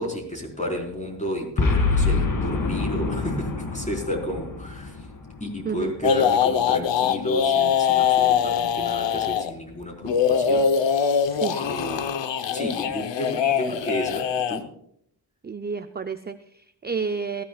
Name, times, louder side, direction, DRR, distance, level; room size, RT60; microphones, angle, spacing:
voice 1, 0.0-5.0 5.4-11.2 11.6-12.1 12.5-14.6, equal, 15° left, 0 dB, 4.3 m, -32 dB
Boom, 1.6-6.0, left 3 dB, 50° left, 2.3 m, -26 dB
sound 1, 6.0-9.5 10.0-14.6, left 7 dB, 85° left, 1.0 m, -22 dB
voice 2, 11.3-11.7 15.4-17.4, right 5 dB, 25° right, 9 dB, 0.5 m, -31 dB
19.0 x 15.0 x 2.4 m, 0.69 s
wide cardioid pair, 110°, 42 cm